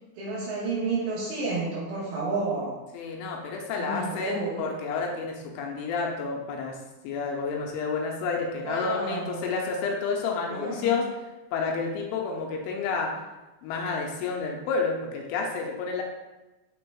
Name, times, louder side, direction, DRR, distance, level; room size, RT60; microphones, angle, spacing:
voice 1, 0.2-2.8 3.8-4.6 8.6-9.5 10.5-11.0, right 3 dB, 70° right, -7 dB, 3.1 m, -31 dB
voice 2, 2.9-6.8 7.0-11.1 11.5-13.2 13.6-16.0, left 4 dB, 80° left, 1 dB, 3.0 m, -30 dB
11.5 x 3.8 x 2.3 m, 1.1 s
omnidirectional pair, 5.7 m